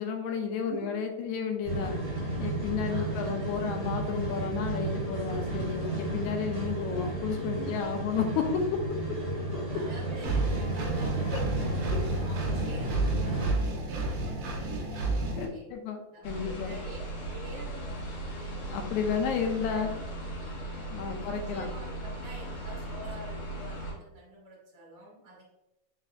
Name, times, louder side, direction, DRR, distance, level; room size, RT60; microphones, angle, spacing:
voice 1, 0.0-2.0 2.4-8.8 11.3-11.4 11.9-12.0 15.4-16.7 18.7-19.9 20.9-21.7, left 6 dB, 80° left, 4 dB, 2.0 m, -32 dB
sound 1, 1.6-13.5, right 2 dB, 25° right, 0.9 m, -33 dB
voice 2, 2.8-3.8 7.5-7.9 9.7-11.7 12.0-15.7 16.1-18.9 19.3-19.9 21.1-25.5, right 1 dB, 50° right, -5 dB, 0.4 m, -47 dB
Engine, 10.2-15.4, right 2 dB, 85° right, 1.0 m, -31 dB
sound 2, 16.2-23.9, right 1 dB, 60° left, 2.1 m, -38 dB
4.4 x 4.1 x 2.5 m, 0.94 s
omnidirectional pair, 3.4 m